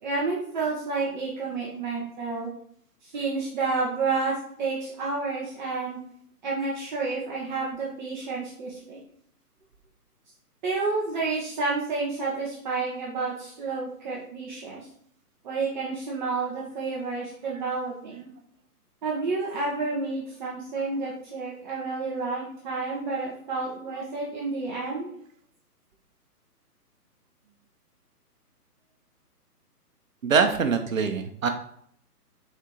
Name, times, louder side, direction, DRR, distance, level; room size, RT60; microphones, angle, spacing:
voice 1, 0.0-2.5 3.0-6.0 6.4-9.0 10.6-14.8 15.4-18.3 19.0-25.1, right 3 dB, 30° right, -4 dB, 1.3 m, -30 dB
voice 2, 30.2-31.5, right 5 dB, 55° right, 6 dB, 1.2 m, -23 dB
6.5 x 4.6 x 4.8 m, 0.65 s
hypercardioid pair, 150°, 47 cm